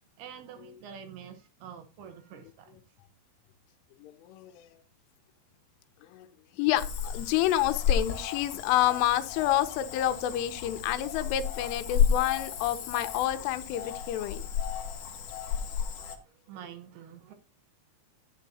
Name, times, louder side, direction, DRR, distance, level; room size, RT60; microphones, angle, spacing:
voice 1, 0.2-2.8 15.9-17.3, right 8 dB, 75° right, 2.4 m, -47 dB
voice 2, 4.0-4.7 6.1-6.3 6.5-14.5, left 13 dB, 85° left, 3.2 m, -29 dB
Cricket / Frog, 6.8-16.2, left 8 dB, 65° left, 2.0 m, -32 dB
12.0 x 9.1 x 2.7 m
omnidirectional pair, 5.6 m